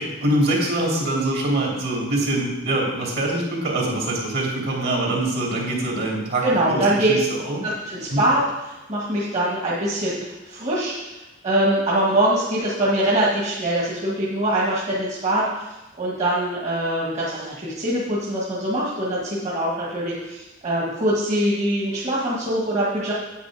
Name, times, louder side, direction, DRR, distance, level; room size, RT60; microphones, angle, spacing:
voice 1, 0.0-7.6 8.1-8.2, right 1 dB, 55° right, -2 dB, 3.0 m, -24 dB
voice 2, 6.4-7.2 7.6-8.4 8.9-10.9 11.4-15.7 16.0-23.1, right 1 dB, 35° right, -5 dB, 1.7 m, -23 dB
9.2 x 8.7 x 4.9 m, 1.0 s
head